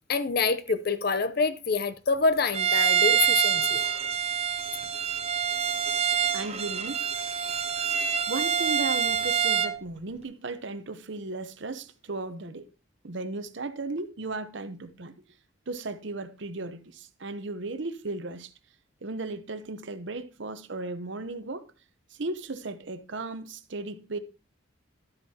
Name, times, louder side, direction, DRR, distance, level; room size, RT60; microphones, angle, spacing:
voice 1, 0.1-3.8, left 4 dB, 50° left, 0.6 m, -26 dB
Bowed string instrument, 2.5-9.8, right 7 dB, 30° right, 0.5 m, -26 dB
voice 2, 6.3-7.0 8.3-12.7 13.0-15.1 15.7-18.5 19.0-21.6 22.2-24.2, right 3 dB, 60° right, 0.8 m, -35 dB
12.5 x 8.3 x 2.8 m
head